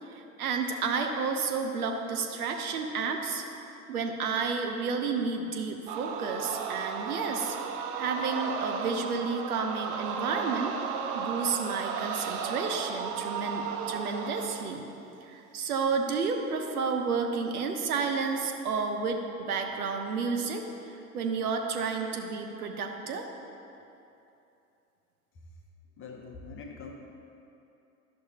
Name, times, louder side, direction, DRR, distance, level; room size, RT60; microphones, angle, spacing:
voice 1, 0.1-3.4 3.9-7.6 8.0-10.7 11.1-14.8 15.2-23.3, right 5 dB, 70° right, 4 dB, 0.9 m, -31 dB
sound 1, 5.9-14.8, right 6 dB, 40° right, 0.6 m, -34 dB
voice 2, 26.0-26.9, left 4 dB, 25° left, 1 dB, 0.9 m, -44 dB
11.0 x 6.1 x 2.9 m, 2.8 s
figure-of-eight pair, 80°, 46 cm